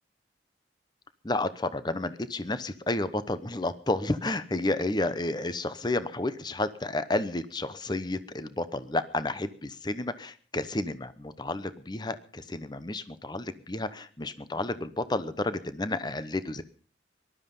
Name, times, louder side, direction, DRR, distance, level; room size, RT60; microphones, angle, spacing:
voice 1, 1.2-16.6, left 2 dB, 25° left, 13 dB, 0.9 m, -31 dB
19.0 x 12.5 x 5.4 m, 0.41 s
head